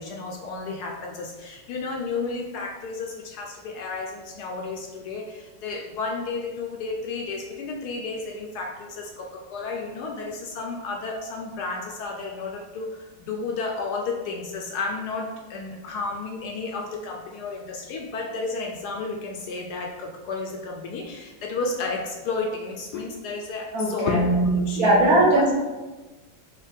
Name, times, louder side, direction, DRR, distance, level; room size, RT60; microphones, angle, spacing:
voice 1, 0.0-25.5, left 2 dB, 70° left, 1 dB, 1.0 m, -31 dB
voice 2, 23.7-24.2 24.8-25.5, right 1 dB, 60° right, -4 dB, 1.5 m, -19 dB
4.7 x 2.8 x 3.4 m, 1.2 s
omnidirectional pair, 1.9 m